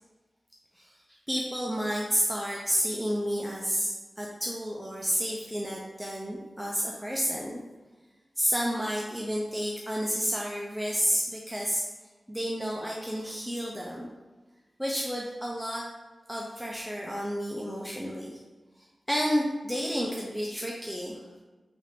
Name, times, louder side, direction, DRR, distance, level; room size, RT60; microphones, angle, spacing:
voice 1, 0.8-7.6 8.4-11.9 12.3-14.1 14.8-15.8 16.3-18.4 18.8-21.2, equal, ahead, -3 dB, 0.4 m, -31 dB
3.4 x 2.5 x 4.0 m, 1.2 s
wide cardioid pair, 105°, 0 cm